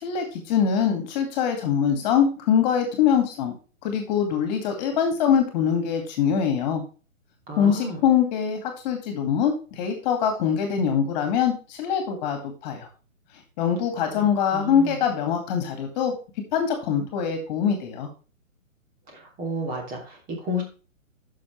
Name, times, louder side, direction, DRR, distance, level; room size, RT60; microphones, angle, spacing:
voice 1, 0.0-3.5 3.8-6.8 7.6-12.9 13.6-16.1 16.5-18.1, left 8 dB, 30° left, 5 dB, 2.4 m, -23 dB
voice 2, 7.5-8.0 14.0-14.3 14.5-15.0 19.1-20.6, equal, 20° right, 1 dB, 2.9 m, -32 dB
11.0 x 6.5 x 3.3 m, 0.35 s
figure-of-eight pair, 135°, 40 cm